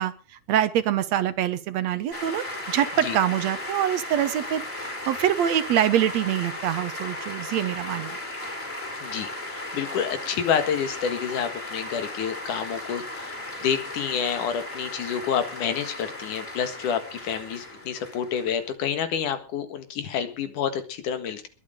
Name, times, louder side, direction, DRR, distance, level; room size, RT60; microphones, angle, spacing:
voice 1, 0.0-8.2, right 11 dB, 70° right, 13 dB, 2.0 m, -25 dB
sound 1, 2.1-18.7, left 1 dB, 20° left, 4.1 m, -36 dB
voice 2, 9.0-13.3 13.6-21.5, left 8 dB, 85° left, 9 dB, 3.2 m, -28 dB
21.5 x 8.5 x 5.2 m, 0.36 s
omnidirectional pair, 3.5 m